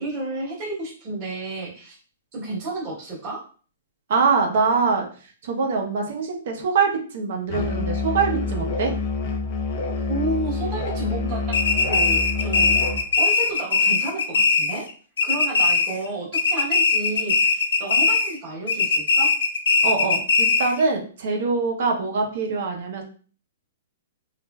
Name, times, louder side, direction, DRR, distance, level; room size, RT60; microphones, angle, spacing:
voice 1, 0.0-2.0 2.3-3.4 10.1-11.6 11.9-12.8 13.2-14.8 15.2-19.3, right 2 dB, 20° right, -7 dB, 1.0 m, -31 dB
voice 2, 4.1-5.1 5.4-8.9 19.8-23.0, right 4 dB, 45° right, 1 dB, 0.7 m, -23 dB
Musical instrument, 7.5-13.1, left 4 dB, 30° left, 0.4 m, -27 dB
sound 1, 11.5-14.9 15.2-16.1 16.3-18.4 18.7-20.8, left 4 dB, 85° left, 0.5 m, -20 dB
3.1 x 2.4 x 2.3 m, 0.41 s
hypercardioid pair, 180°, 0 cm